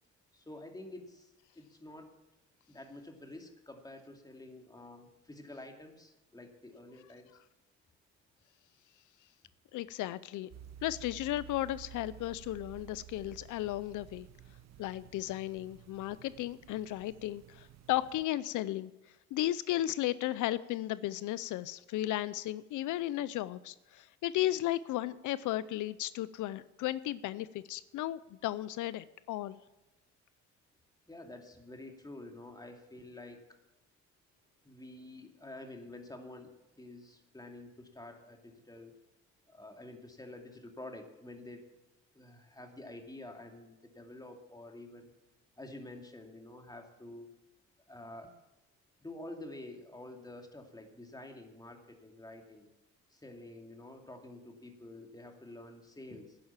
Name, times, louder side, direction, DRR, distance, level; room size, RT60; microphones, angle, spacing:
voice 1, 0.3-2.1 2.7-7.4 31.1-33.6 34.6-39.0 39.5-41.7 42.1-45.1 45.6-47.3 47.9-48.4 49.0-52.7 53.1-56.4, left 2 dB, 15° left, 4 dB, 2.4 m, -49 dB
voice 2, 9.7-10.5 10.8-14.3 14.8-18.9 19.3-29.6, left 14 dB, 85° left, 17 dB, 0.5 m, -35 dB
sound 1, 10.5-18.2, right 10 dB, 60° right, 0.8 m, -53 dB
11.0 x 10.5 x 7.3 m, 1.0 s
cardioid pair, 90°, 30 cm